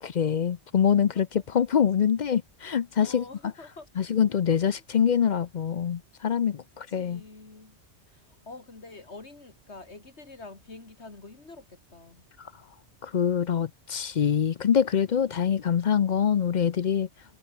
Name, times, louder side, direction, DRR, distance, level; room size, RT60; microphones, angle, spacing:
voice 1, 0.0-3.2 4.0-7.2 13.0-17.1, left 8 dB, 50° left, 0.6 m, -25 dB
voice 2, 3.0-3.9 7.0-7.8 8.1-12.2, left 3 dB, 75° left, 3.7 m, -46 dB
omnidirectional pair, 1.1 m